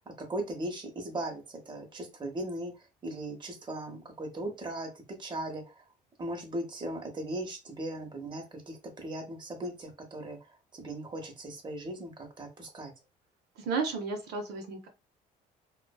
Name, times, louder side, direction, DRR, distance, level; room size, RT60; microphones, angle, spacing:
voice 1, 0.2-2.7 3.0-5.7 6.2-10.4 10.7-12.9, right 1 dB, 25° right, 3 dB, 0.8 m, -38 dB
voice 2, 13.6-14.9, right 4 dB, 75° right, 4 dB, 0.6 m, -33 dB
2.5 x 2.2 x 2.2 m, 0.27 s
cardioid pair, 110°, 17 cm